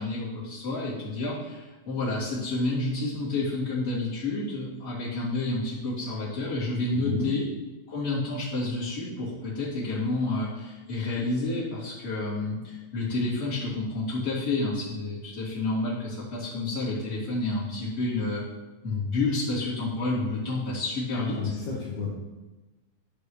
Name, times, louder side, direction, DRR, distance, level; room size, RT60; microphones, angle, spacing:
voice 1, 0.0-7.4 7.9-18.4 18.8-21.4, left 2 dB, 20° left, -10 dB, 2.9 m, -29 dB
voice 2, 6.9-7.3 21.3-22.1, left 4 dB, 65° left, -5 dB, 2.3 m, -31 dB
11.5 x 5.1 x 3.4 m, 1.2 s
omnidirectional pair, 3.9 m